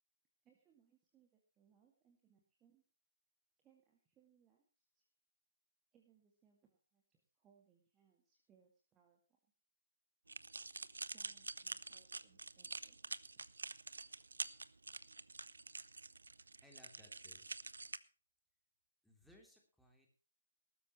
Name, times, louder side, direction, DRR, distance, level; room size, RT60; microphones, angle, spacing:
voice 1, 0.4-2.8 3.6-5.0 5.9-9.2 11.1-13.0 13.3-13.4 13.9-14.3, right 7 dB, 15° right, 1 dB, 2.2 m, -73 dB
sound 1, 10.3-18.0, right 3 dB, 65° right, 0.8 m, -47 dB
voice 2, 16.6-17.5 19.0-20.1, left 1 dB, ahead, 0 dB, 3.2 m, -64 dB
19.5 x 13.0 x 3.1 m, 0.35 s
figure-of-eight pair, 135°, 0 cm